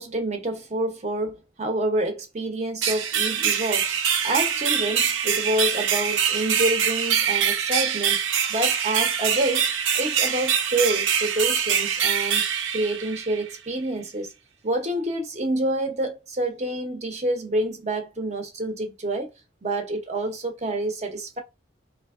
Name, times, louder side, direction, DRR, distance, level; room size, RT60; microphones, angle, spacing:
voice 1, 0.0-3.9 4.2-8.2 8.5-9.7 9.9-12.4 12.7-14.3 14.6-19.3 19.6-21.4, right 1 dB, 35° right, 0.7 m, -27 dB
sound 1, 2.8-13.5, right 8 dB, 85° right, 0.6 m, -24 dB
3.5 x 2.7 x 2.4 m
head